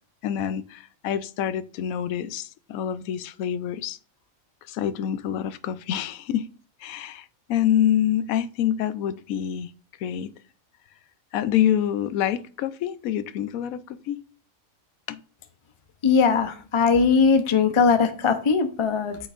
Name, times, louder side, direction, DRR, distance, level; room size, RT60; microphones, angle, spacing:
voice 1, 0.2-4.0 4.7-6.5 6.8-9.7 10.0-10.3 11.3-14.2 15.1-15.2, left 10 dB, 85° left, 1.0 m, -26 dB
voice 2, 16.0-19.2, left 5 dB, 30° left, 0.5 m, -20 dB
8.8 x 6.2 x 2.5 m
omnidirectional pair, 1.4 m